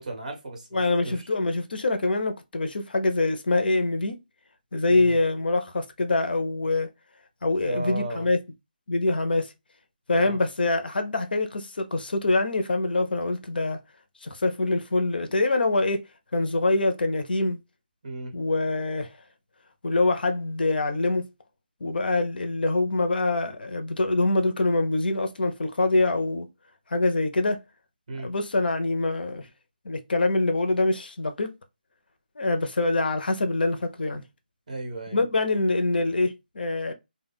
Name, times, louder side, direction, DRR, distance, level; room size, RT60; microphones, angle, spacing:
voice 1, 0.0-1.3 4.9-5.2 7.6-8.3 10.1-10.4 18.0-18.3 28.1-28.3 34.7-35.2, right 2 dB, 50° right, 1.0 m, -35 dB
voice 2, 0.7-4.2 4.7-6.9 7.4-8.4 8.9-9.5 10.1-13.8 14.2-16.0 16.3-17.6 18.3-19.1 19.8-21.3 21.8-26.5 26.9-27.6 28.2-29.5 29.8-31.5 32.4-34.2 35.1-36.9, left 2 dB, 75° left, 0.6 m, -24 dB
2.3 x 2.2 x 3.3 m
hypercardioid pair, 175°, 5 cm